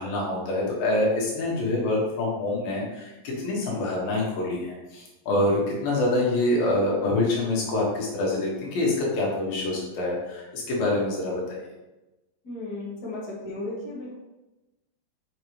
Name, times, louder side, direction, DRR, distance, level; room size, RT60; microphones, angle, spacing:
voice 1, 0.0-3.1 3.4-11.6, left 2 dB, 65° left, -4 dB, 2.6 m, -26 dB
voice 2, 12.4-14.1, left 2 dB, 85° left, -7 dB, 0.8 m, -35 dB
6.5 x 6.0 x 3.1 m, 1.0 s
omnidirectional pair, 5.4 m